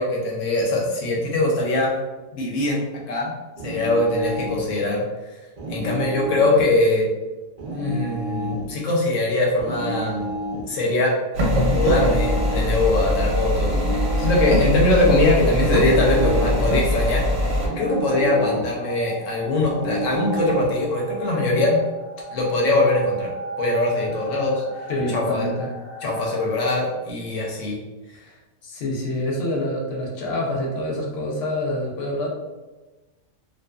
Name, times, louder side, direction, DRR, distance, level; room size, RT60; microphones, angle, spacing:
voice 1, 0.0-1.9 2.3-2.8 3.1-3.3 3.6-5.0 5.7-7.1 7.7-10.3 10.7-13.7 14.2-21.8 22.3-23.3 23.6-24.6 25.1-25.5 26.0-27.8, left 2 dB, 85° left, -2 dB, 1.1 m, -22 dB
sound 1, 3.6-4.7 5.6-6.7 7.6-8.7 9.6-10.7 11.6-12.7 13.6-14.7 15.6-16.7 17.6-18.7 19.6-20.7, right 1 dB, 55° right, 0.4 m, -30 dB
voice 2, 5.6-6.1 24.9-25.7 28.2-28.3 28.6-32.3, left 1 dB, 60° left, -2 dB, 0.9 m, -27 dB
sound 2, 11.3-17.7, equal, 90° right, 1.0 m, -22 dB
sound 3, 14.8-26.7, right 2 dB, 30° left, 0.7 m, -38 dB
2.5 x 2.3 x 2.2 m, 1.2 s
omnidirectional pair, 1.3 m